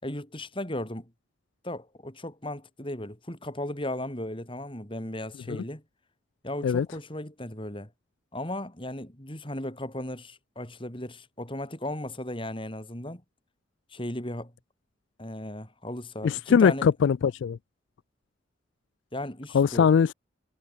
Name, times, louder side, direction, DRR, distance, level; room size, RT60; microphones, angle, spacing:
voice 1, 0.0-1.1 1.6-5.8 6.4-7.9 8.3-13.2 13.9-14.5 15.2-16.9 19.1-19.9, left 1 dB, 30° left, 5.2 m, -36 dB
voice 2, 16.2-17.6 19.5-20.1, left 6 dB, 80° left, 0.3 m, -21 dB
head